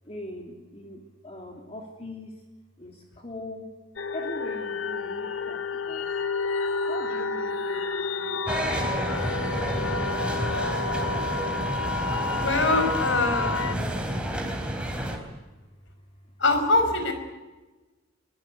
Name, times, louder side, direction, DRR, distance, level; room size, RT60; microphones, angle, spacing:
voice 1, 0.0-2.3 2.8-3.7 4.1-6.1 6.8-9.5 16.2-16.3, left 1 dB, 30° left, 1 dB, 3.1 m, -41 dB
sound 1, 4.0-13.7, left 3 dB, 80° left, 1.2 m, -30 dB
sound 2, 8.5-15.2, equal, 5° right, 3.7 m, -30 dB
voice 2, 12.3-13.8 16.4-17.1, left 2 dB, 65° left, 7 dB, 5.1 m, -24 dB
23.0 x 21.0 x 8.1 m, 1.2 s
head